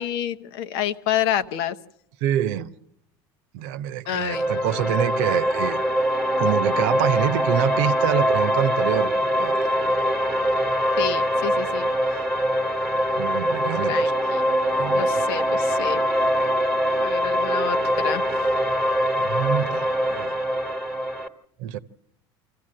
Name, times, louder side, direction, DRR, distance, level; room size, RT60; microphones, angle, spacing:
voice 1, 0.0-1.8 4.1-4.5 11.0-11.9 13.9-14.4 14.9-16.0 17.0-17.8 18.0-18.2, left 10 dB, 75° left, 11 dB, 1.0 m, -28 dB
voice 2, 2.2-2.7 3.5-5.8 6.4-9.9 13.2-14.1 14.8-15.1 19.2-20.4 21.6-21.8, right 11 dB, 70° right, 13 dB, 0.9 m, -26 dB
sound 1, 4.3-21.3, equal, ahead, 1.4 m, -23 dB
25.5 x 14.5 x 7.7 m, 0.76 s
supercardioid pair, 100°, 13 cm